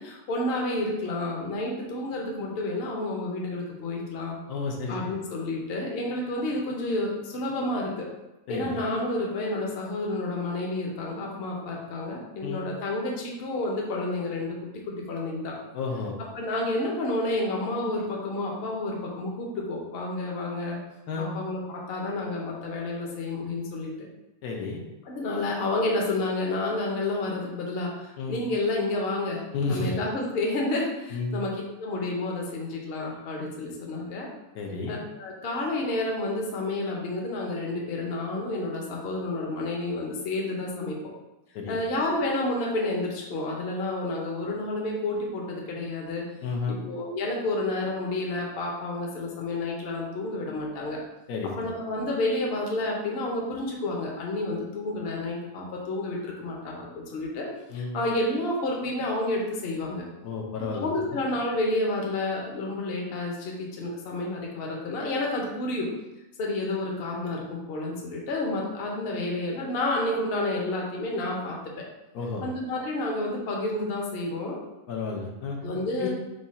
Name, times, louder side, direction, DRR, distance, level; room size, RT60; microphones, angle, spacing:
voice 1, 0.0-4.4 4.9-8.1 8.5-14.6 14.9-15.6 16.3-20.8 21.2-24.1 25.0-29.4 29.7-34.3 34.9-41.0 41.7-46.2 46.7-51.0 51.6-57.5 57.7-60.0 60.6-65.9 66.4-71.8 72.4-74.6 75.6-76.1, left 2 dB, 50° left, -1 dB, 0.8 m, -30 dB
voice 2, 4.5-4.9 8.5-8.8 12.4-12.6 15.7-16.1 21.1-21.3 24.4-24.8 28.2-28.4 29.5-29.9 31.1-31.4 34.5-35.0 41.5-41.8 46.4-46.8 51.3-51.7 57.7-58.0 60.2-60.9 72.1-72.5 74.9-75.6 76.0-76.1, left 4 dB, 75° left, -1 dB, 1.2 m, -31 dB
4.9 x 2.3 x 4.1 m, 0.97 s
omnidirectional pair, 1.6 m